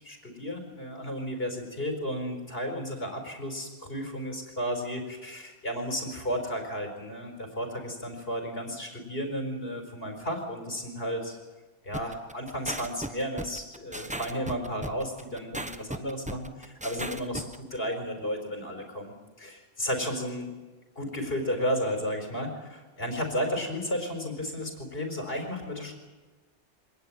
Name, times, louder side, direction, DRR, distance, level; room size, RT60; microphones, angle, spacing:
voice 1, 0.0-11.4 11.8-20.5 21.0-25.9, equal, 60° left, 4 dB, 4.9 m, -33 dB
sound 1, 11.9-17.6, right 1 dB, 5° right, 0.9 m, -36 dB
25.5 x 18.5 x 9.1 m, 1.2 s
omnidirectional pair, 1.1 m